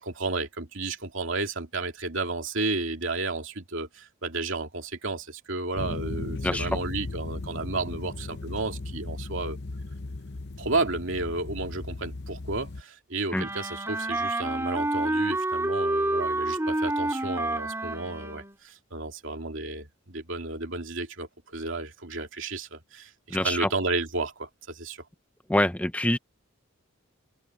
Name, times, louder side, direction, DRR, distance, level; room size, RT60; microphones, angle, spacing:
voice 1, 0.0-9.6 10.6-25.0, right 3 dB, 60° right, 2.8 m, -32 dB
sound 1, 5.8-12.8, left 2 dB, 50° left, 0.8 m, -36 dB
Wind instrument woodwind instrument, 13.3-18.6, right 1 dB, 10° right, 2.8 m, -28 dB
voice 2, 23.3-23.7 25.5-26.2, left 1 dB, 5° left, 0.7 m, -25 dB
open air
head